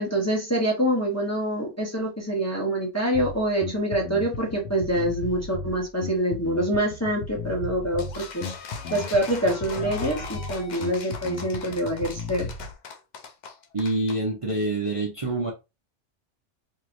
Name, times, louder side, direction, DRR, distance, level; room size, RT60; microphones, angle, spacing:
voice 1, 0.0-8.4 8.9-12.5, right 1 dB, 15° left, 0.7 m, -26 dB
Bass guitar, 3.1-12.7, left 4 dB, 80° left, 0.9 m, -35 dB
sound 1, 8.0-14.2, left 5 dB, 55° left, 0.5 m, -40 dB
voice 2, 13.7-15.5, right 2 dB, 35° right, 0.6 m, -26 dB
3.0 x 2.7 x 2.5 m
omnidirectional pair, 1.2 m